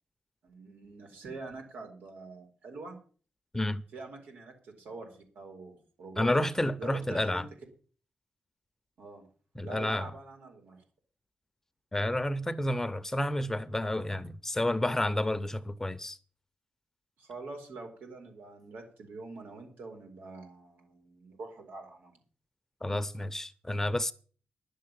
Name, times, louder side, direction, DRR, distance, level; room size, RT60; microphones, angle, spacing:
voice 1, 0.4-3.0 3.9-6.5 6.8-7.4 9.0-9.3 9.6-10.8 15.0-15.2 17.2-22.2, right 3 dB, 85° right, 4.1 m, -45 dB
voice 2, 6.2-7.5 9.6-10.1 11.9-16.2 22.8-24.1, left 1 dB, 15° left, 0.7 m, -30 dB
11.0 x 7.6 x 8.6 m
cardioid pair, 95°, 3 cm